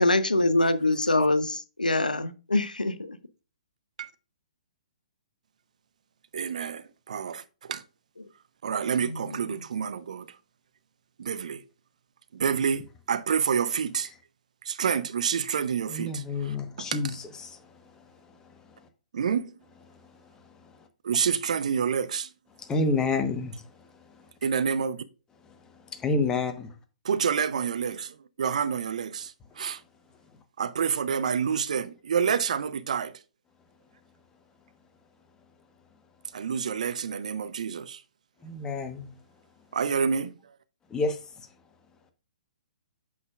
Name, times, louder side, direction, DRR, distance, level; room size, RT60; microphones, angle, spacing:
voice 1, 0.0-3.2 9.0-9.2, left 2 dB, 90° left, 0.8 m, -24 dB
voice 2, 6.3-7.8 8.6-10.3 11.2-11.6 12.3-14.1 14.6-17.0 19.1-19.5 21.0-22.3 24.4-25.0 27.0-29.8 30.6-33.2 36.3-38.0 39.7-40.3, right 7 dB, 60° right, 0.7 m, -28 dB
voice 3, 15.9-17.6 17.9-18.0 22.6-23.6 25.9-26.7 38.4-39.1 40.9-41.2, left 3 dB, 15° left, 1.1 m, -29 dB
8.5 x 6.6 x 2.4 m
figure-of-eight pair, 125°, 4 cm